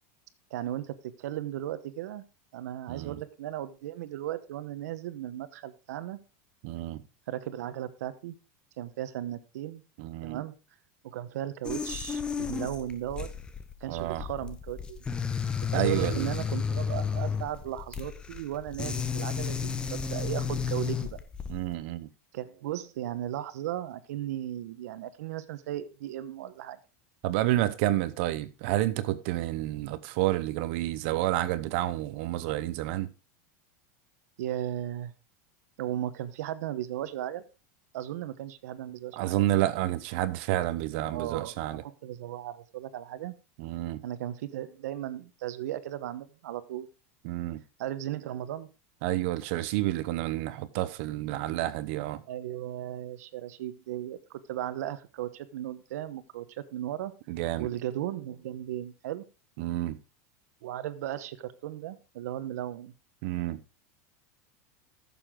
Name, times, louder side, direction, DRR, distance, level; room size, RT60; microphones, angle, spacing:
voice 1, 0.5-2.2 2.5-6.2 7.3-8.4 8.8-9.8 10.2-10.5 11.0-13.3 13.8-15.0 15.7-21.2 22.3-26.8 34.4-35.1 35.8-37.4 37.9-39.4 41.1-43.3 44.0-46.9 47.8-48.7 52.3-57.1 57.6-59.2 60.6-62.9, right 12 dB, 75° right, 1.0 m, -36 dB
voice 2, 2.9-3.2 6.6-7.0 10.0-10.4 13.9-14.2 15.7-16.3 21.5-22.1 27.2-33.1 39.1-41.8 43.6-44.0 47.2-47.6 49.0-52.2 57.3-57.7 59.6-60.0 63.2-63.6, right 15 dB, 50° right, 0.8 m, -29 dB
sound 1, 11.6-21.7, left 6 dB, 10° left, 0.6 m, -32 dB
14.0 x 7.0 x 3.7 m
supercardioid pair, 170°, 8 cm